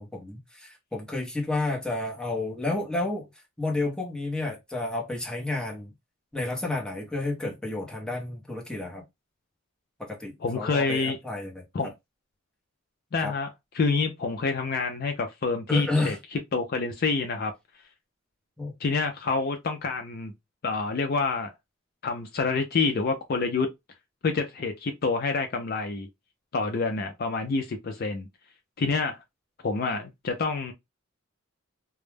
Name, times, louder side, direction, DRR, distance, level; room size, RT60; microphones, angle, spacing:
voice 1, 0.0-3.3 3.6-5.9 6.3-9.0 10.0-11.6 13.2-13.3 15.7-16.2 18.6-18.7, left 2 dB, 5° left, 0.7 m, -30 dB
voice 2, 10.4-11.2 11.7-11.9 13.1-13.5 13.7-17.5 18.8-20.3 20.6-21.5 22.0-23.7 24.2-26.1 26.5-28.3 28.8-29.2 29.6-30.7, left 4 dB, 50° left, 0.4 m, -27 dB
2.2 x 2.0 x 3.2 m
head